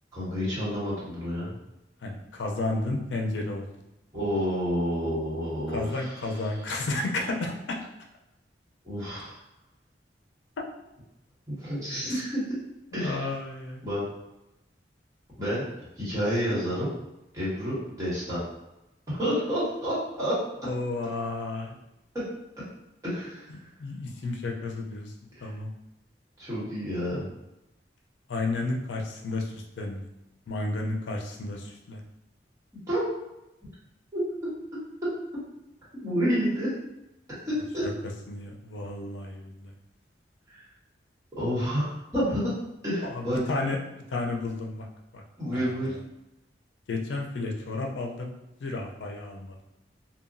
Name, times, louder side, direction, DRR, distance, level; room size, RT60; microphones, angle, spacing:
voice 1, 0.1-1.5 4.1-6.2 8.8-9.3 11.5-12.4 12.9-13.3 13.8-14.0 15.4-15.7 16.0-16.9 17.3-18.5 19.1-20.3 23.0-23.6 25.4-25.5 26.4-27.3 32.9-33.0 34.1-34.2 35.9-36.7 37.5-37.8 40.5-40.6 41.4-42.5 42.8-43.4 45.4-45.9, equal, 20° right, -10 dB, 1.3 m, -29 dB
voice 2, 2.0-3.7 5.7-7.8 13.0-13.8 20.6-21.8 23.8-25.1 25.4-25.7 28.3-30.1 30.5-32.0 37.8-37.9 38.3-39.7 43.0-43.8 44.1-44.9 45.1-45.2 45.5-46.0 46.9-48.3 48.6-49.6, left 2 dB, 90° left, 1 dB, 0.5 m, -32 dB
2.9 x 2.2 x 2.5 m, 0.93 s
head